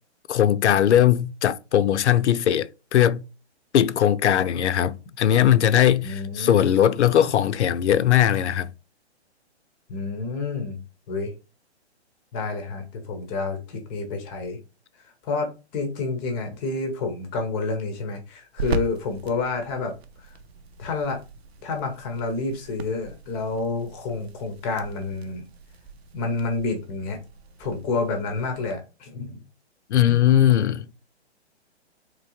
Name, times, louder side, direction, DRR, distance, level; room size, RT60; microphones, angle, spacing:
voice 1, 0.3-3.2 3.7-8.7 29.9-30.9, left 10 dB, 80° left, 0.5 m, -19 dB
voice 2, 6.0-6.6 9.9-10.8 11.1-11.3 12.3-14.6 15.2-19.9 20.2-20.3 20.8-21.2 21.6-25.4 26.1-27.2 27.6-29.4 30.0-30.2, left 3 dB, 15° left, 0.5 m, -29 dB
sound 1, 16.5-28.7, right 2 dB, 65° right, 0.7 m, -39 dB
3.7 x 3.1 x 2.9 m
hypercardioid pair, 145°, 34 cm